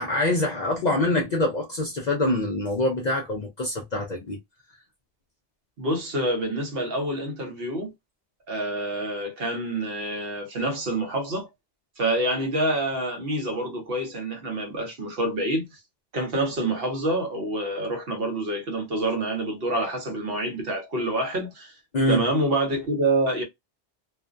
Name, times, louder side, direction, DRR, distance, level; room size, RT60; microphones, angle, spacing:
voice 1, 0.0-4.4 21.9-22.2, left 1 dB, 55° left, 0.5 m, -25 dB
voice 2, 5.8-7.9 8.5-11.5 12.0-15.8 16.1-21.7 22.1-23.4, right 1 dB, 60° right, 1.0 m, -27 dB
2.5 x 2.1 x 2.4 m
omnidirectional pair, 1.2 m